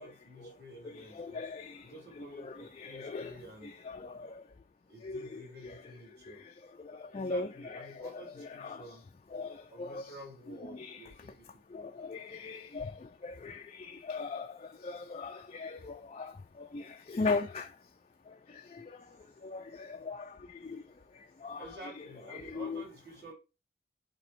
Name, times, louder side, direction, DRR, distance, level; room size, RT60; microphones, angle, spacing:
voice 1, 0.0-1.4 1.8-3.7 4.9-6.4 7.1-9.0 9.7-11.9 21.6-23.3, right 1 dB, 55° right, 3.6 m, -51 dB
voice 2, 0.9-1.8 2.2-3.3 3.6-4.3 5.0-5.7 6.9-8.8 9.3-10.1 10.6-11.0 11.7-12.9 13.2-14.5 14.8-16.3 16.7-17.7 19.4-20.3 20.6-20.8 21.4-21.7 22.0-22.8, left 4 dB, 35° left, 0.3 m, -39 dB
8.2 x 2.9 x 4.2 m
head